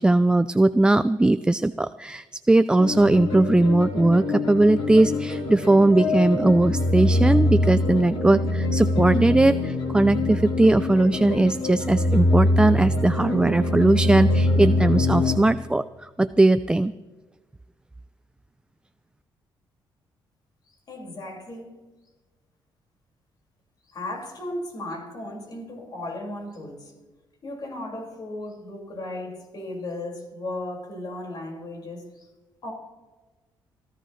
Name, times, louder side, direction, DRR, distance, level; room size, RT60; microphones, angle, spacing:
voice 1, 0.0-15.8 16.2-16.9, right 2 dB, 10° right, 13 dB, 0.4 m, -19 dB
sound 1, 2.8-15.4, left 2 dB, 90° left, 4.0 m, -24 dB
voice 2, 20.7-21.8 23.9-26.9 27.4-32.3 32.6-32.7, left 1 dB, 50° left, 0 dB, 5.3 m, -36 dB
24.0 x 13.5 x 3.2 m, 1.2 s
cardioid pair, 90°, 9 cm